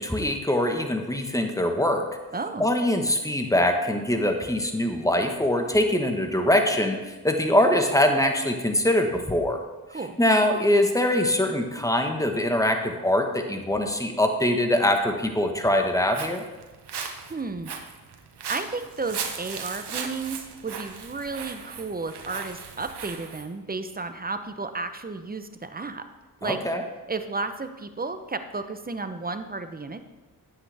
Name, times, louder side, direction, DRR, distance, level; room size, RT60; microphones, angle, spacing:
voice 1, 0.0-2.0 2.6-9.6 10.2-16.4 26.4-26.8, left 1 dB, 10° left, 4 dB, 1.3 m, -23 dB
voice 2, 2.3-2.7 9.9-10.2 17.3-17.7 18.5-26.0 26.4-26.6 27.1-30.0, right 3 dB, 25° right, 9 dB, 0.8 m, -33 dB
Walk footsteps, 15.8-23.5, right 6 dB, 80° right, 1.0 m, -37 dB
9.6 x 7.9 x 3.5 m, 1.2 s
cardioid pair, 50°, 39 cm